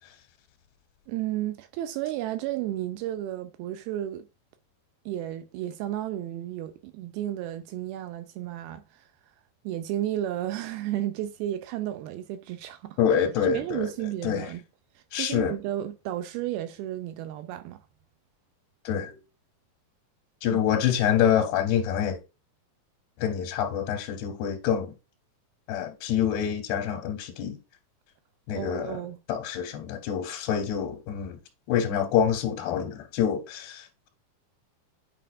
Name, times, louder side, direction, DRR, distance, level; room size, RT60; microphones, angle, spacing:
voice 1, 1.1-4.3 5.1-9.1 9.6-13.0 13.4-14.6 15.0-17.8 20.5-20.6 28.5-29.2, right 13 dB, 85° right, 2.4 m, -33 dB
voice 2, 13.0-13.9 14.2-14.5 15.1-15.5 18.9-19.2 20.4-22.2 23.2-24.9 25.7-27.6 28.5-29.0 29.3-31.4 31.7-34.1, left 9 dB, 90° left, 2.9 m, -26 dB
8.7 x 4.6 x 2.5 m
omnidirectional pair, 4.5 m